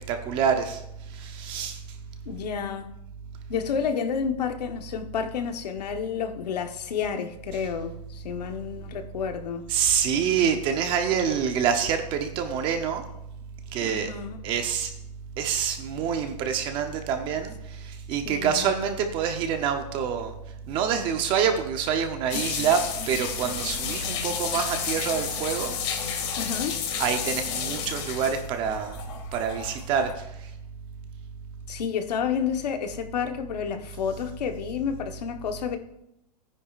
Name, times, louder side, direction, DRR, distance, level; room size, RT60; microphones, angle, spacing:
voice 1, 0.1-0.8 1.1-1.8 9.7-13.0 13.7-14.1 14.4-14.9 15.4-20.3 20.7-25.8 27.0-29.0 29.3-30.3, right 7 dB, 25° right, 0.8 m, -26 dB
voice 2, 2.3-2.9 3.5-9.6 13.8-14.4 18.2-18.7 26.4-26.8 31.7-35.8, left 7 dB, 70° left, 1.2 m, -30 dB
sound 1, 22.3-30.1, left 7 dB, 40° left, 2.3 m, -31 dB
15.5 x 9.9 x 2.5 m
hypercardioid pair, 160°, 21 cm